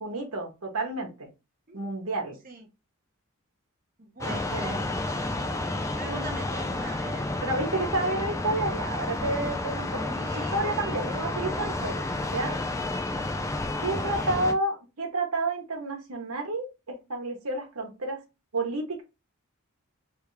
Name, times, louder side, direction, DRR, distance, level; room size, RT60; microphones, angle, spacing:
voice 1, 0.0-1.3 1.7-2.4 4.3-4.9 7.4-10.0 10.3-12.6 13.8-18.2 18.5-19.0, right 2 dB, 80° right, 1 dB, 1.2 m, -30 dB
voice 2, 4.0-4.6 5.1-7.3 9.9-11.5 13.8-14.4, right 3 dB, 40° right, 3 dB, 0.9 m, -43 dB
sound 1, 4.2-14.5, left 2 dB, 15° left, 0.4 m, -31 dB
3.5 x 3.3 x 3.2 m, 0.27 s
head